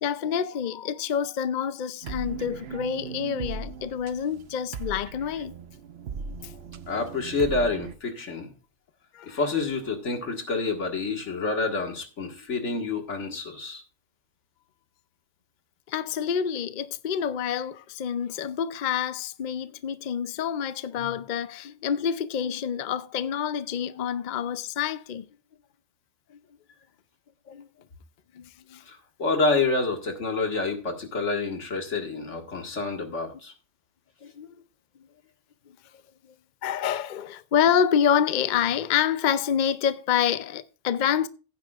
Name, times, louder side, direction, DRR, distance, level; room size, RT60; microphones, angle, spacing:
voice 1, 0.0-5.5 9.1-9.4 15.9-25.2 27.5-27.7 28.4-28.8 34.2-34.5 36.6-41.3, left 8 dB, 50° left, 0.6 m, -27 dB
sound 1, 2.0-7.9, right 5 dB, 65° right, 0.9 m, -38 dB
voice 2, 6.9-8.5 9.3-13.8 28.9-33.5, left 3 dB, 85° left, 2.2 m, -28 dB
15.5 x 9.5 x 2.4 m
omnidirectional pair, 1.2 m